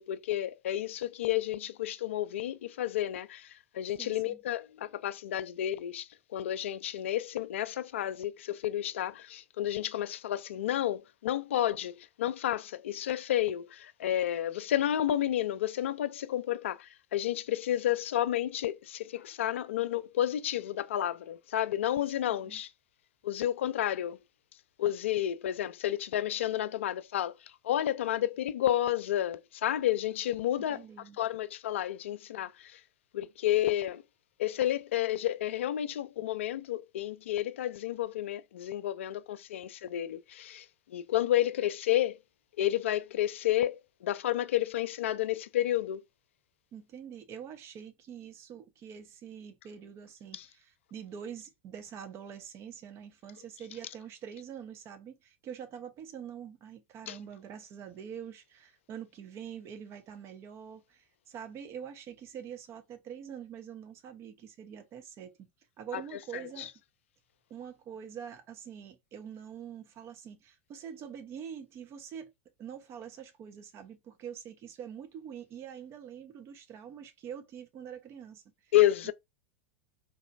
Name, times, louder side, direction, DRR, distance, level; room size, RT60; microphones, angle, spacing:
voice 1, 0.0-22.7 23.2-24.2 24.8-27.3 27.6-30.8 31.2-32.8 33.1-34.0 34.4-42.2 42.6-46.0 50.3-50.5 57.1-57.2 65.9-66.0 66.3-66.7 78.7-79.1, left 12 dB, 70° left, 0.4 m, -31 dB
voice 2, 4.0-4.4 22.3-22.6 30.6-31.2 46.7-65.5 65.8-66.7 67.5-72.3 72.6-78.4 79.0-79.1, right 8 dB, 40° right, 0.9 m, -45 dB
3.9 x 3.0 x 2.5 m
hypercardioid pair, 90°, 7 cm